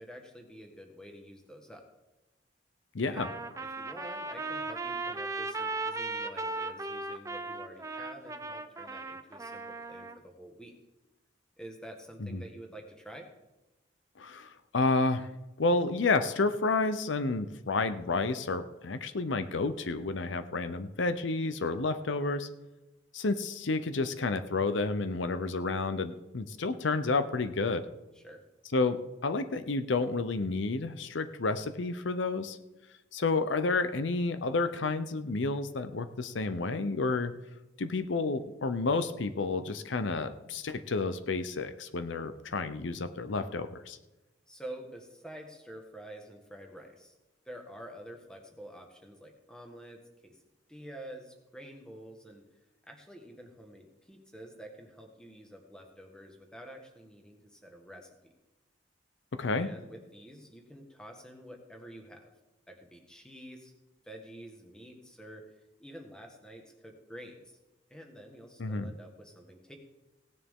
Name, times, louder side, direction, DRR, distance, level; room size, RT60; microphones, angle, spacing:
voice 1, 0.0-1.8 3.1-3.4 3.6-10.7 11.6-13.3 28.1-28.4 44.5-47.1 47.4-50.4 50.7-52.4 52.9-58.3 59.5-62.3 62.7-63.7 64.0-67.6 67.9-69.8, right 1 dB, 5° left, 3 dB, 1.5 m, -48 dB
voice 2, 2.9-3.3 12.2-12.4 14.2-15.3 15.6-22.5 23.1-27.9 28.7-32.6 33.1-37.3 37.8-44.0 59.3-59.7 68.6-68.9, left 3 dB, 75° left, 11 dB, 0.7 m, -30 dB
Trumpet, 3.2-10.2, right 3 dB, 15° right, 0.5 m, -37 dB
17.0 x 9.9 x 3.7 m, 1.0 s
head